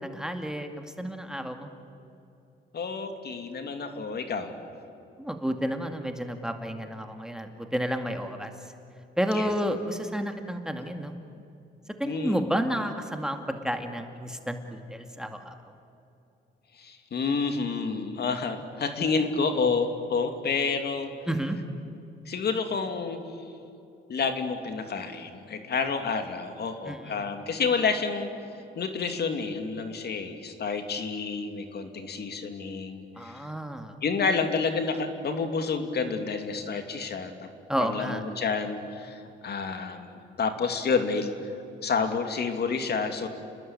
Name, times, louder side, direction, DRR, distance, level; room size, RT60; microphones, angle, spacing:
voice 1, 0.0-1.7 5.2-8.5 9.2-11.1 12.0-15.5 21.3-21.6 26.9-27.0 33.2-33.9 37.7-38.2, equal, 5° right, 5 dB, 2.2 m, -31 dB
voice 2, 2.7-4.6 9.3-9.5 12.0-12.5 16.8-21.1 22.3-23.2 24.1-28.3 28.8-33.5 34.0-37.5 37.8-41.3 41.8-43.3, left 5 dB, 55° left, 6 dB, 2.6 m, -29 dB
30.0 x 20.5 x 9.0 m, 2.6 s
cardioid pair, 90°, 20 cm